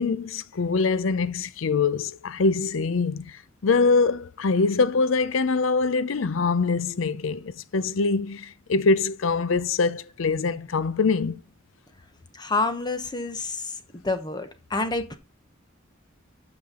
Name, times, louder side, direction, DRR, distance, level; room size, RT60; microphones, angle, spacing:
voice 1, 0.0-11.4, left 4 dB, 80° left, 0.5 m, -24 dB
voice 2, 12.3-13.8 14.0-15.2, left 3 dB, 20° left, 0.9 m, -28 dB
8.6 x 5.9 x 3.6 m
head